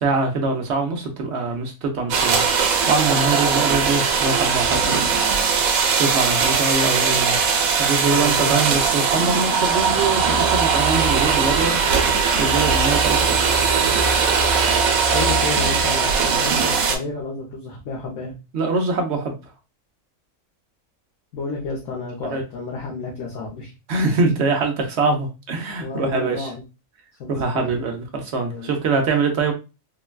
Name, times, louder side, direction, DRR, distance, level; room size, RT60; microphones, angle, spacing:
voice 1, 0.0-5.1 6.0-7.4 7.8-11.8 12.4-13.4 18.5-19.3 22.3-22.4 23.9-26.5 27.3-29.5, right 3 dB, 60° right, 3 dB, 0.9 m, -23 dB
sound 1, 2.1-17.0, right 5 dB, 85° right, 1.1 m, -19 dB
voice 2, 8.1-8.5 15.1-18.3 21.3-23.7 25.8-26.6 27.2-28.0 28.5-28.7, left 3 dB, 75° left, -3 dB, 1.2 m, -31 dB
3.8 x 2.1 x 2.2 m, 0.28 s
omnidirectional pair, 1.4 m